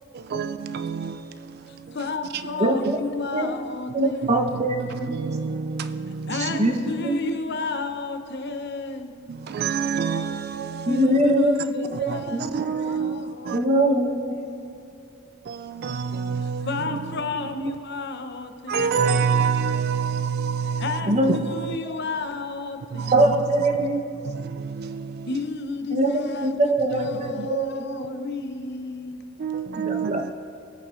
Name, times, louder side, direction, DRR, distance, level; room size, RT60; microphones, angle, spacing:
voice 1, 0.1-2.0 4.5-4.6 5.0-6.6 6.9-7.0 9.3-11.1 11.9-13.6 15.5-17.0 18.7-21.0 21.3-21.8 22.9-23.3 23.8-25.3 27.4-27.5 29.4-30.3, right 6 dB, 50° right, 0.3 m, -28 dB
voice 2, 1.7-4.5 6.3-9.4 10.9-13.7 14.5-14.7 16.6-19.3 20.8-23.1 25.3-26.6 26.8-29.3 29.6-29.7, left 3 dB, 55° left, 0.8 m, -32 dB
voice 3, 3.9-5.3 6.3-7.3 10.9-12.5 13.5-14.7 21.1-21.3 23.1-24.2 25.9-27.8 29.7-30.2, right 1 dB, 35° right, 1.0 m, -23 dB
20.0 x 8.6 x 2.5 m
head